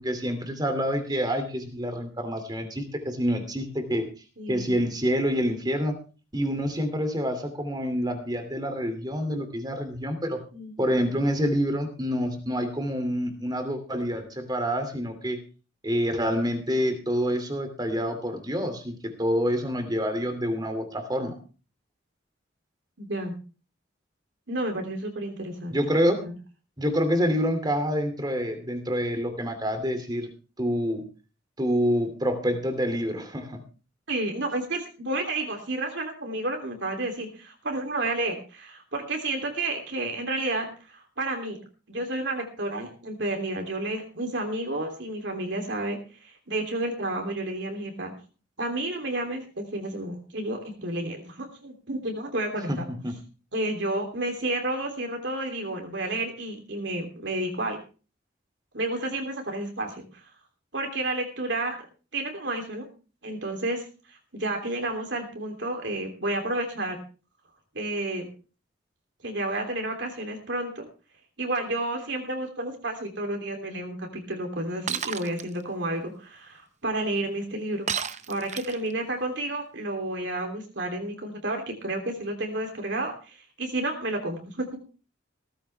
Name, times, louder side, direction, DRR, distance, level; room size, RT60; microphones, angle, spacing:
voice 1, 0.0-4.1 4.5-6.0 6.3-10.4 10.8-15.4 15.8-21.4 25.7-26.2 26.8-30.3 30.6-31.1 31.6-33.6 52.7-52.8 53.0-53.2, equal, 20° right, 7 dB, 2.6 m, -27 dB
voice 2, 4.4-4.7 10.5-10.7 23.0-23.3 24.5-25.8 26.2-26.3 34.1-41.6 41.9-48.1 48.6-52.9 53.5-57.8 58.7-60.0 60.7-61.8 62.1-62.8 63.2-67.0 67.7-68.3 69.2-70.9 71.4-77.9 78.3-84.7, right 2 dB, 65° right, 3 dB, 3.1 m, -31 dB
Shatter, 74.9-75.4 77.9-78.9, right 7 dB, 35° right, 0.8 m, -31 dB
17.0 x 14.5 x 3.4 m, 0.36 s
head